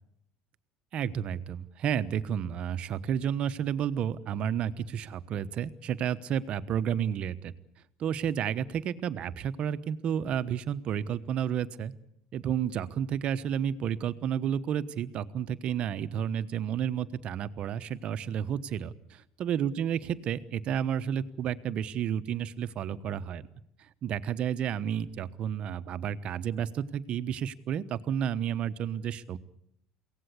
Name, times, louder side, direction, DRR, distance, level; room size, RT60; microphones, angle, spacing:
voice 1, 0.9-7.5 8.0-11.9 12.3-18.9 19.4-23.5 24.0-29.4, right 9 dB, 50° right, 13 dB, 1.1 m, -31 dB
23.0 x 17.5 x 8.4 m, 0.76 s
supercardioid pair, 90°, 2 cm